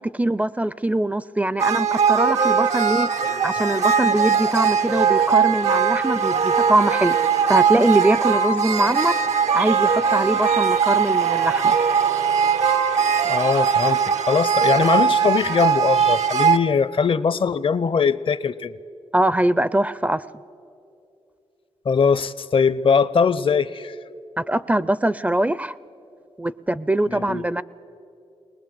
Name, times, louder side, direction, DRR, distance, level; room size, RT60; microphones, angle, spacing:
voice 1, 0.0-7.2 7.5-9.1 9.5-11.8 19.1-20.2 24.4-25.7 26.4-27.6, right 1 dB, 15° right, 18 dB, 0.4 m, -22 dB
sound 1, 1.6-16.6, right 6 dB, 90° right, 0.9 m, -20 dB
voice 2, 13.2-18.7 21.9-23.9 27.1-27.4, left 5 dB, 50° left, 17 dB, 0.6 m, -21 dB
20.5 x 19.5 x 7.7 m, 2.6 s
cardioid pair, 75°, 11 cm